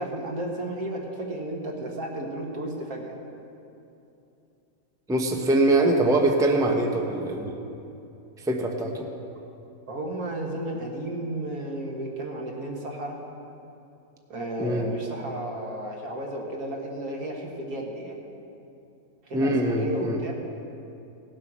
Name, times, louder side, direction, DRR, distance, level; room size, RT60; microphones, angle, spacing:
voice 1, 0.0-3.1 9.9-13.2 14.3-18.1 19.3-20.3, right 1 dB, 85° right, -1 dB, 2.1 m, -33 dB
voice 2, 5.1-7.6 8.4-9.1 14.6-14.9 19.3-20.2, right 2 dB, 5° right, 2 dB, 0.7 m, -23 dB
17.5 x 7.6 x 6.1 m, 2.8 s
omnidirectional pair, 1.5 m